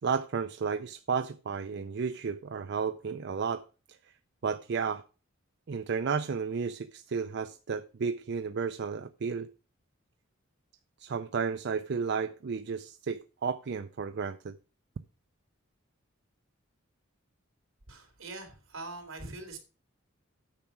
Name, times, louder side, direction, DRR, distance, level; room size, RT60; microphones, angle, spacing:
voice 1, 0.0-3.6 4.4-5.0 5.7-9.5 11.0-14.6, right 5 dB, 55° right, 0.5 m, -32 dB
voice 2, 17.9-19.6, right 2 dB, 75° right, 3.2 m, -43 dB
9.0 x 5.9 x 5.9 m
head